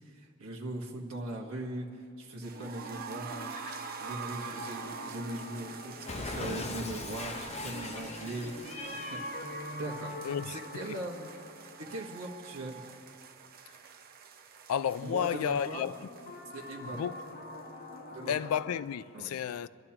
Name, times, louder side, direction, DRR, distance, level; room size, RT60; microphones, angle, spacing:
voice 1, 0.1-1.9 2.2-3.6 4.0-8.8 9.1-9.2 9.8-10.2 10.7-11.3 11.8-12.8 15.0-15.8 16.5-17.0 18.1-18.3 19.1-19.3, right 1 dB, 70° right, 1.4 m, -40 dB
sound 1, 2.4-18.3 18.5-18.6 18.9-19.0, right 7 dB, 45° right, 0.8 m, -47 dB
sound 2, 2.6-13.4 15.5-18.8, left 1 dB, 50° left, 1.2 m, -45 dB
Cat, 6.1-9.4, left 3 dB, 30° left, 0.7 m, -40 dB
voice 2, 10.2-11.0 14.7-16.0 16.8-17.1 18.3-19.7, left 8 dB, 80° left, 0.3 m, -32 dB
27.5 x 12.0 x 2.9 m
head